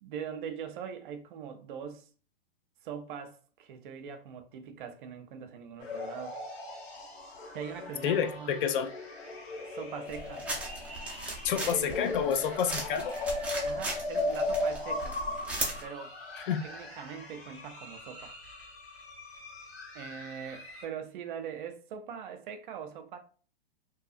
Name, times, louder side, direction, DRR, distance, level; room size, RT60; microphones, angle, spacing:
voice 1, 0.0-2.1 2.8-6.4 7.5-8.6 9.7-10.5 11.5-12.0 12.4-12.6 13.6-15.2 15.8-16.1 16.6-18.3 19.9-23.2, right 7 dB, 55° right, 0.6 m, -42 dB
sound 1, 5.8-20.9, left 2 dB, 85° left, 1.4 m, -38 dB
voice 2, 8.0-8.9 11.4-13.2 16.4-16.6, left 8 dB, 55° left, 0.5 m, -29 dB
sound 2, 10.1-15.9, right 2 dB, 5° right, 0.6 m, -38 dB
2.7 x 2.4 x 2.4 m
hypercardioid pair, 125°, 31 cm